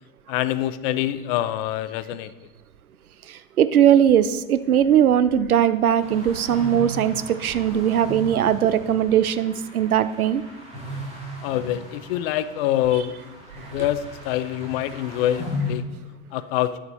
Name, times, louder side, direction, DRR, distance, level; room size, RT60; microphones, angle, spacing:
voice 1, 0.3-2.3 11.4-13.4 13.7-15.8 16.3-16.7, left 12 dB, 45° left, 14 dB, 0.6 m, -25 dB
voice 2, 3.3-10.4, right 9 dB, 85° right, 14 dB, 0.6 m, -19 dB
sound 1, 6.0-15.8, left 2 dB, 15° right, 2.7 m, -36 dB
10.0 x 6.8 x 4.2 m, 1.2 s
figure-of-eight pair, 90°, 43 cm